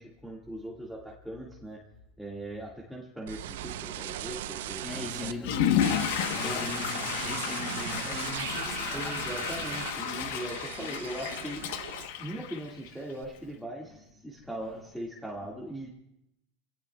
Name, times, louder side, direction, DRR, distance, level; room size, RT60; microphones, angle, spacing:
voice 1, 0.0-1.8 2.2-5.5 6.4-6.6 8.9-11.7 12.2-15.9, right 1 dB, ahead, -3 dB, 2.0 m, -40 dB
sound 1, 3.3-5.3 5.8-12.4 12.7-13.2, right 12 dB, 85° right, 0.7 m, -38 dB
voice 2, 4.8-9.6 13.3-13.5 13.8-13.9 14.4-14.7, left 3 dB, 25° left, -3 dB, 7.8 m, -40 dB
Water / Toilet flush, 5.4-13.1, left 9 dB, 75° left, 1.1 m, -32 dB
26.5 x 17.5 x 2.3 m, 0.84 s
supercardioid pair, 145°, 0 cm